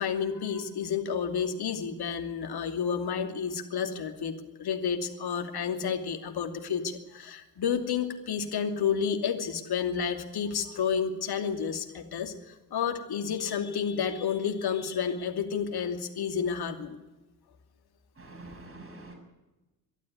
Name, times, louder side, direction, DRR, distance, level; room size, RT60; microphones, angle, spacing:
voice 1, 0.0-17.0, left 7 dB, 50° left, 5 dB, 2.8 m, -30 dB
voice 2, 18.2-19.1, right 2 dB, 25° right, 3 dB, 6.5 m, -46 dB
24.0 x 11.5 x 9.5 m, 1.1 s
hypercardioid pair, 55°, 49 cm